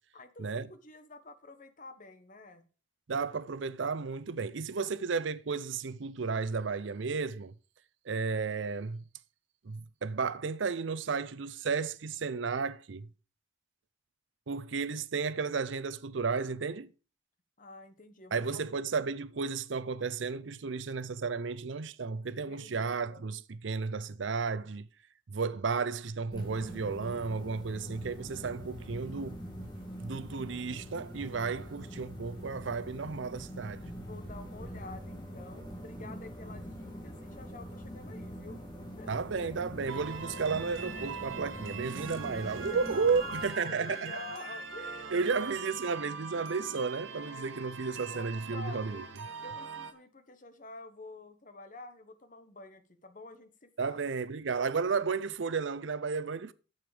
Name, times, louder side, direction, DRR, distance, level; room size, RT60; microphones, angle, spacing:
voice 1, 0.1-2.7 4.8-4.9 17.6-18.7 22.4-23.3 30.3-30.4 34.0-39.3 42.7-45.5 47.1-47.8 48.1-49.0 49.4-54.0, left 2 dB, 45° left, 1.2 m, -48 dB
voice 2, 3.1-7.5 8.1-9.0 9.6-13.1 14.5-16.9 18.3-24.9 25.3-29.4 30.0-33.9 39.1-44.2 45.1-49.0 53.8-56.5, right 5 dB, 70° right, 0.6 m, -33 dB
sound 1, 26.3-43.5, equal, 25° left, 3.2 m, -44 dB
sound 2, 39.9-49.9, right 5 dB, 90° right, 1.4 m, -42 dB
9.3 x 7.9 x 5.0 m
head